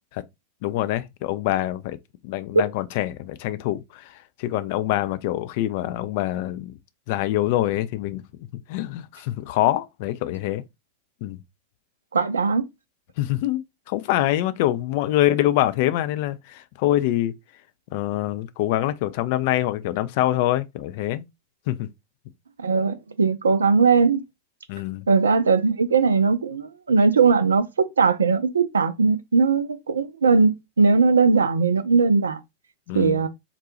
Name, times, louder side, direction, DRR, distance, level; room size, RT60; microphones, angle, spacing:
voice 1, 0.6-2.0 2.2-6.8 7.1-8.2 8.7-10.6 11.2-11.4 13.2-13.6 13.9-17.3 17.9-21.2 21.7-21.9 24.7-25.1 32.9-33.2, left 14 dB, 50° left, 0.3 m, -25 dB
voice 2, 12.1-12.7 22.6-24.2 25.1-32.4 32.9-33.3, right 4 dB, 70° right, 0.4 m, -19 dB
4.0 x 2.2 x 2.8 m
figure-of-eight pair, 90°, 0 cm